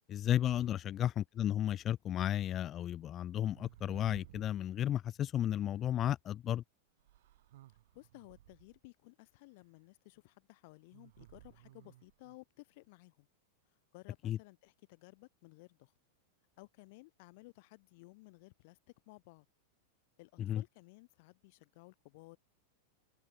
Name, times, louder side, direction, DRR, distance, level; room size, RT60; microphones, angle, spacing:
voice 1, 0.1-6.6 14.2-14.4 20.4-20.6, left 11 dB, 35° left, 0.5 m, -33 dB
sound 1, 2.4-2.6 3.3-4.6 5.8-5.9 7.0-8.8 10.9-12.4, right 15 dB, 70° right, 6.7 m, -58 dB
voice 2, 7.9-13.3 13.9-15.9 16.6-18.8 19.1-19.5 20.2-22.4, left 25 dB, 60° left, 2.8 m, -57 dB
open air
hypercardioid pair, 110°, 0 cm